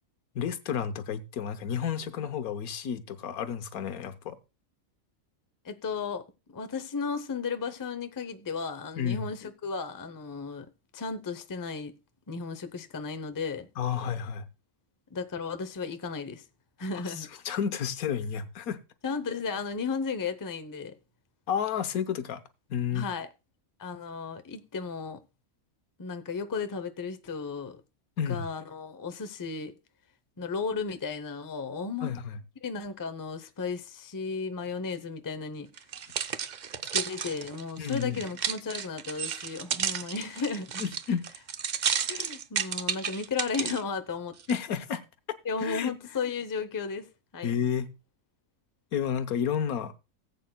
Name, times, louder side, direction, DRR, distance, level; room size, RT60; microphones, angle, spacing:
voice 1, 0.3-4.4 9.0-9.3 13.8-14.4 17.0-17.1 17.4-18.8 21.5-22.4 22.7-23.1 28.2-28.5 32.0-32.4 37.8-38.2 40.8-41.2 44.5-45.0 45.6-45.9 47.4-47.9 48.9-49.9, left 8 dB, 90° left, 1.3 m, -31 dB
voice 2, 5.6-10.7 10.9-11.9 12.3-13.7 15.1-16.4 16.8-17.3 19.0-21.0 22.9-23.3 23.8-25.2 26.0-27.8 28.3-29.8 30.4-32.1 32.6-35.7 36.9-40.8 42.0-44.3 45.4-47.5, left 5 dB, 25° left, 0.4 m, -34 dB
sound 1, 35.8-43.8 44.4-44.5, right 7 dB, 65° right, 0.4 m, -32 dB
18.0 x 8.3 x 2.2 m
omnidirectional pair, 1.5 m